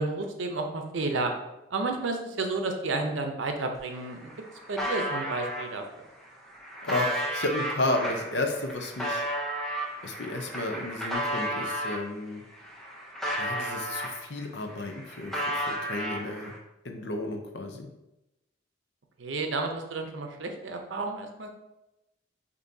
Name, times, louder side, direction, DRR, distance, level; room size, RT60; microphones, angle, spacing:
voice 1, 0.0-1.3 1.7-4.3 4.7-6.0 19.2-21.5, right 3 dB, 85° right, 4 dB, 0.6 m, -31 dB
sound 1, 3.7-3.8 4.1-5.6 6.3-12.0 12.5-14.4 14.7-16.6, right 1 dB, ahead, 0.6 m, -33 dB
voice 2, 6.8-9.2 10.0-12.4 13.4-16.5 16.8-17.9, left 2 dB, 65° left, 4 dB, 0.6 m, -32 dB
6.8 x 2.7 x 2.7 m, 0.94 s
head